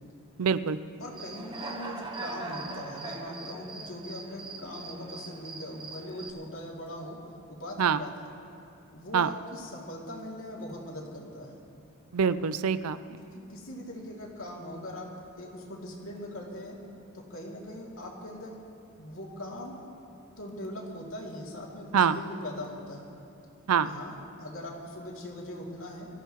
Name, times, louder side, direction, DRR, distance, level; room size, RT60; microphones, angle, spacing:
voice 1, 0.4-0.8 7.8-8.0 9.1-9.3 12.1-13.0 21.9-22.2 23.7-23.9, right 6 dB, 85° right, 14 dB, 0.5 m, -25 dB
voice 2, 1.0-7.2 7.5-8.3 8.9-11.6 13.2-16.8 17.1-18.5 19.0-19.8 20.4-23.1 23.8-26.1, left 1 dB, 70° left, -3 dB, 2.7 m, -41 dB
Human voice / Cricket, 1.1-6.3, right 3 dB, 20° right, 0.8 m, -41 dB
24.5 x 14.5 x 3.1 m, 2.6 s
head